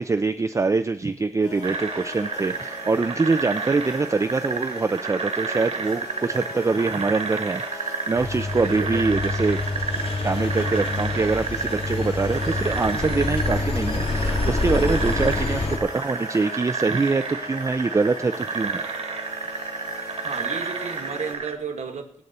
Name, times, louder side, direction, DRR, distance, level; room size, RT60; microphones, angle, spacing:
voice 1, 0.0-9.6 10.2-18.9, right 4 dB, 25° right, 8 dB, 0.4 m, -24 dB
sound 1, 1.4-21.3, left 3 dB, 70° left, 5.8 m, -40 dB
sound 2, 1.6-21.6, right 5 dB, 60° right, 1.5 m, -31 dB
Engine, 8.1-15.8, left 3 dB, 55° left, 2.0 m, -27 dB
voice 2, 8.5-9.2 14.7-15.2 20.2-22.2, right 5 dB, 80° right, 6 dB, 1.7 m, -34 dB
24.0 x 8.2 x 4.2 m, 0.71 s
wide cardioid pair, 150°, 12 cm